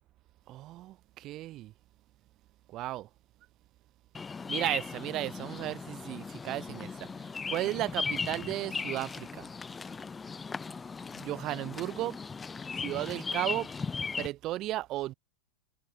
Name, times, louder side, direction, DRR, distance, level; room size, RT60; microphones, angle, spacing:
voice 1, 0.5-1.7 2.7-3.1 4.5-9.5 11.1-12.2 12.7-13.7 14.2-15.1, right 15 dB, 35° right, 0.8 m, -35 dB
Bird vocalization bird call bird song, 4.1-14.3, left 5 dB, 15° left, 2.8 m, -38 dB
figure-of-eight pair, 90°, 0 cm